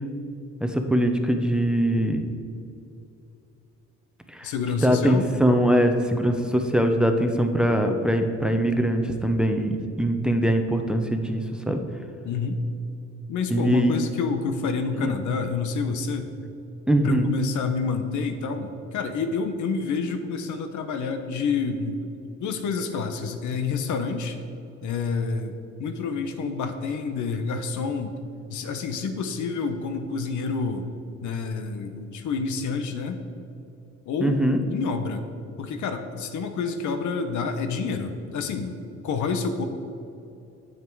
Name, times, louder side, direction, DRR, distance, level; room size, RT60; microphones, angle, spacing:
voice 1, 0.6-2.3 4.3-4.5 4.8-11.8 13.5-14.0 15.0-15.1 16.9-17.3 34.2-34.6, right 1 dB, 5° right, 5 dB, 0.8 m, -22 dB
voice 2, 4.4-5.3 12.2-12.6 13.3-16.3 17.0-24.4 24.8-28.2 28.5-30.9 31.2-33.2 34.1-35.3 35.6-39.7, left 5 dB, 75° left, 7 dB, 0.9 m, -28 dB
9.2 x 7.5 x 4.6 m, 2.7 s
cardioid pair, 90°, 30 cm